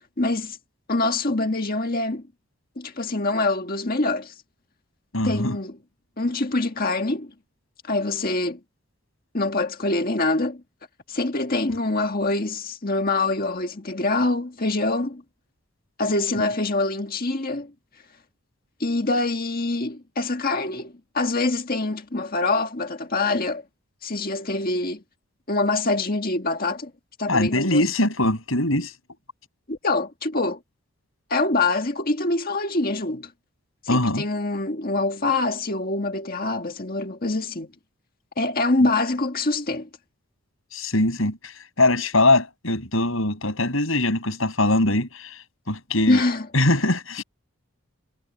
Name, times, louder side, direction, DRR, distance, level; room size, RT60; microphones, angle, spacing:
voice 1, 0.2-0.6 0.9-2.2 2.8-4.3 5.2-5.8 6.2-7.3 7.8-8.6 9.3-10.6 11.1-15.2 16.0-17.7 18.8-23.6 24.0-25.0 25.5-26.9 27.2-27.9 29.7-30.6 31.3-33.3 33.9-37.7 38.4-39.9 46.1-46.5, left 2 dB, 40° left, 1.8 m, -25 dB
voice 2, 5.1-5.6 27.3-28.9 33.9-34.2 40.7-45.4 45.7-46.2 46.5-47.2, left 2 dB, 65° left, 7.8 m, -22 dB
head